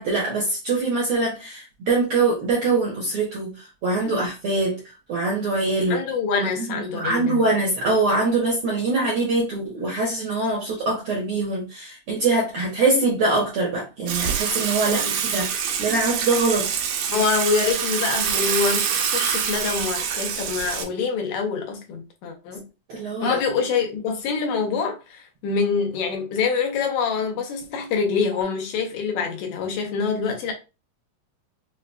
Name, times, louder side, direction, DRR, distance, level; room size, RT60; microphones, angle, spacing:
voice 1, 0.0-4.8 5.1-6.0 6.6-15.5 15.8-16.7 22.9-23.4, right 3 dB, 70° right, 1.3 m, -23 dB
voice 2, 5.9-7.4 14.9-15.2 17.1-18.9 19.1-22.7 23.2-30.5, left 5 dB, 75° left, 2.0 m, -25 dB
Water / Water tap faucet / Sink (filling or washing), 14.1-20.8, right 7 dB, 85° right, 2.2 m, -25 dB
5.6 x 2.3 x 2.2 m
omnidirectional pair, 3.5 m